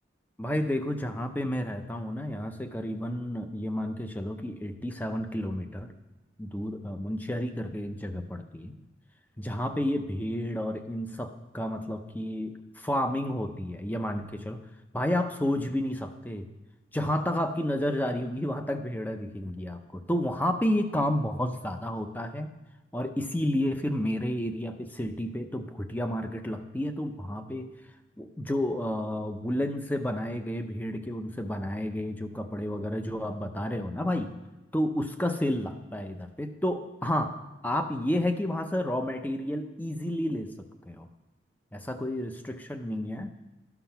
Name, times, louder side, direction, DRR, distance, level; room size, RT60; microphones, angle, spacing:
voice 1, 0.4-5.9 6.4-8.8 9.4-14.6 14.9-16.5 16.9-22.5 22.9-27.7 28.2-34.4 34.7-37.3 37.6-41.1 41.7-43.3, left 1 dB, 10° left, 7 dB, 0.5 m, -31 dB
12.5 x 6.0 x 5.6 m, 1.1 s
head